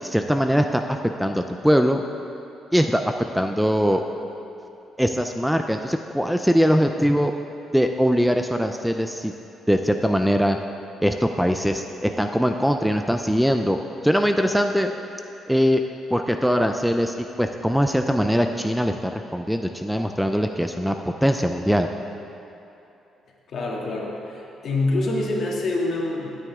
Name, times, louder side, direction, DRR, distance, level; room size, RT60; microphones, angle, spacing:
voice 1, 0.0-2.0 2.7-4.0 5.0-7.3 7.7-9.3 9.7-10.6 11.0-13.8 14.0-14.9 15.5-15.8 16.1-20.9 21.2-21.9, equal, ahead, 5 dB, 0.5 m, -21 dB
voice 2, 23.5-26.3, left 2 dB, 60° left, -2 dB, 2.2 m, -26 dB
16.5 x 9.2 x 3.7 m, 2.9 s
cardioid pair, 90°, 0 cm